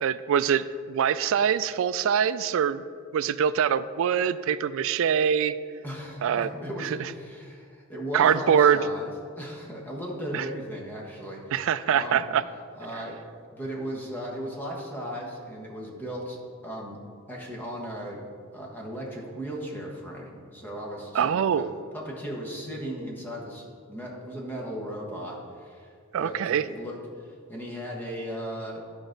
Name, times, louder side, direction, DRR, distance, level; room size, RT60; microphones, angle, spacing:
voice 1, 0.0-2.8 3.1-5.5 6.2-6.5 6.8-6.9 8.1-8.8 10.3-10.4 11.5-12.4 21.1-21.7 26.1-26.6, right 8 dB, 70° right, 15 dB, 0.3 m, -23 dB
voice 2, 5.8-12.3 12.7-13.2 13.5-17.0 17.3-25.9 26.2-28.8, equal, 10° left, -2 dB, 1.3 m, -37 dB
11.5 x 5.0 x 3.9 m, 2.2 s
head